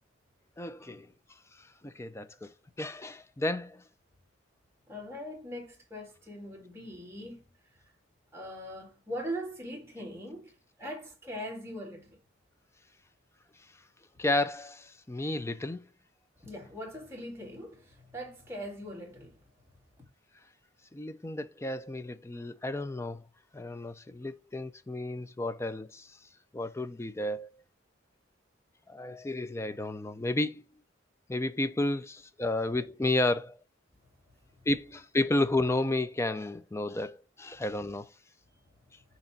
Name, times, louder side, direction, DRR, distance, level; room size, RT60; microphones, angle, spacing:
voice 1, 0.6-1.1 1.8-2.5 2.8-3.8 14.2-15.8 20.9-23.2 23.5-26.1 26.5-27.5 28.9-30.6 31.3-33.6 34.7-38.1, left 2 dB, 15° left, 0.4 m, -32 dB
voice 2, 4.9-7.4 8.3-12.1 16.4-19.4 34.0-34.1 34.6-34.7, equal, 15° right, 2.0 m, -41 dB
6.6 x 3.0 x 5.7 m
head